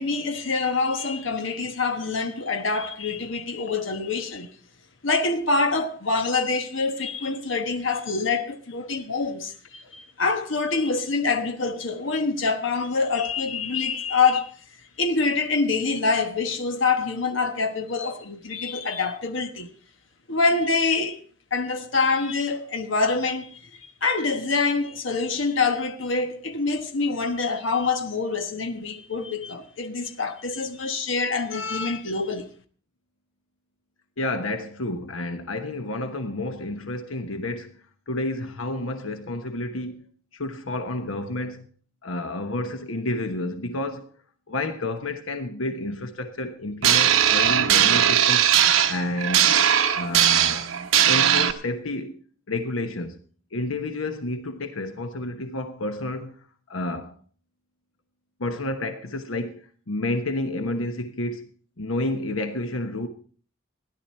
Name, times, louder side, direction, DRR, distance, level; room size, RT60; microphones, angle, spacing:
voice 1, 0.0-4.5 5.0-14.5 15.0-19.7 20.3-21.2 21.5-32.5, left 4 dB, 70° left, 1.3 m, -25 dB
voice 2, 34.2-37.8 38.1-40.0 40.3-41.7 42.0-44.1 44.5-48.5 48.8-49.5 49.9-50.7 51.1-52.2 52.5-53.2 53.5-56.4 56.7-57.1 58.4-61.5 61.8-63.1, left 2 dB, 90° left, 1.2 m, -30 dB
sound 1, 46.8-51.5, right 9 dB, 85° right, 0.9 m, -19 dB
16.5 x 11.5 x 4.3 m
head